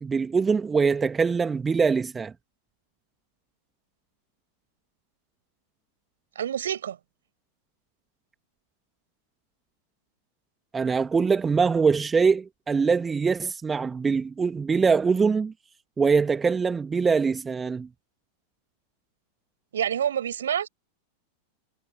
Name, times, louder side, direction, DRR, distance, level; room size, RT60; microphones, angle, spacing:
voice 1, 0.0-2.3 10.7-15.5 16.0-17.9, right 5 dB, 15° right, 2.2 m, -23 dB
voice 2, 6.4-7.0 19.7-20.7, right 9 dB, 65° right, 7.3 m, -27 dB
figure-of-eight pair, 90°, 0 cm